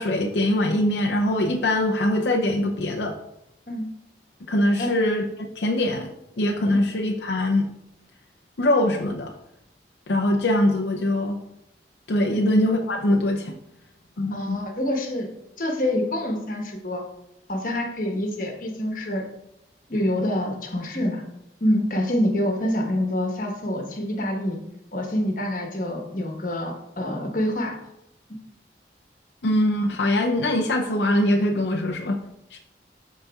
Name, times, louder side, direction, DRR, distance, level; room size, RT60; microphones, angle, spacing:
voice 1, 0.0-3.2 4.5-7.7 8.6-9.3 10.1-11.4 12.1-13.5 14.2-14.6 29.4-32.2 32.5-32.6, left 1 dB, 80° left, 1 dB, 0.6 m, -22 dB
voice 2, 14.3-15.3 15.6-17.0 17.5-19.3 19.9-21.2 21.6-24.6 24.9-27.8, left 1 dB, 50° left, 2 dB, 1.2 m, -26 dB
12.0 x 4.1 x 2.4 m, 0.83 s
head